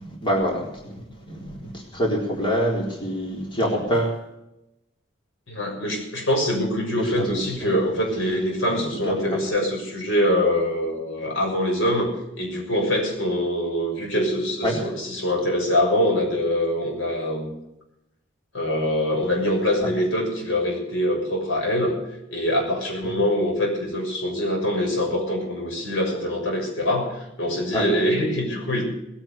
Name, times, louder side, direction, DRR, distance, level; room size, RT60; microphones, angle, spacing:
voice 1, 0.2-0.7 1.3-1.5 1.9-4.2 7.1-7.8 8.7-8.9 14.6-14.8 27.7-27.9, equal, 25° left, -2 dB, 3.9 m, -25 dB
voice 2, 5.5-17.5 18.5-22.0 22.3-28.8, left 1 dB, 90° left, 1 dB, 6.6 m, -24 dB
20.0 x 9.1 x 6.7 m, 0.87 s
head